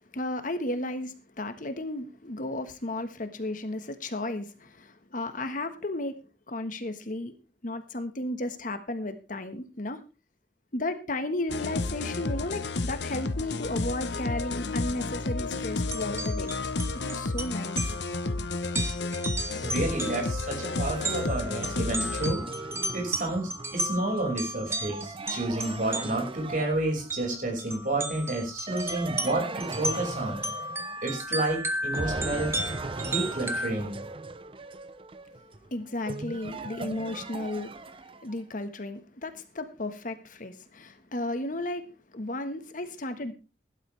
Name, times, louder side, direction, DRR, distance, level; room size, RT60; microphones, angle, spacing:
voice 1, 0.1-6.2 6.5-7.3 7.6-10.0 10.7-16.5 17.0-17.9 35.7-37.7 38.2-43.3, left 1 dB, 50° left, 1.4 m, -34 dB
sound 1, 11.5-22.3, left 3 dB, 80° left, 1.0 m, -31 dB
sound 2, 15.8-26.4 27.1-27.2 27.6-33.7, right 1 dB, 15° right, 1.5 m, -35 dB
voice 2, 19.5-30.5 31.0-32.5 33.0-34.0, right 2 dB, 50° right, 5.7 m, -30 dB
sound 3, 19.9-27.3 28.7-31.5 31.9-38.4, right 3 dB, 30° right, 0.7 m, -39 dB
17.0 x 11.5 x 3.4 m
head